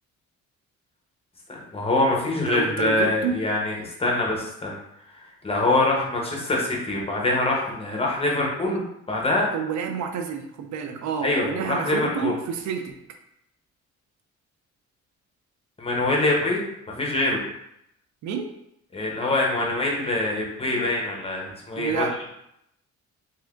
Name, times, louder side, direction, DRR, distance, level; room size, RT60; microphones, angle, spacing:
voice 1, 1.5-4.8 5.4-8.8 9.1-9.5 11.2-12.3 15.8-17.4 18.9-22.1, left 2 dB, 20° left, -2 dB, 0.8 m, -24 dB
voice 2, 2.5-3.4 5.7-5.9 8.7-8.8 9.5-13.0 18.2-18.5 21.8-22.2, right 6 dB, 70° right, 5 dB, 0.5 m, -29 dB
3.2 x 2.7 x 2.5 m, 0.80 s
cardioid pair, 90°, 30 cm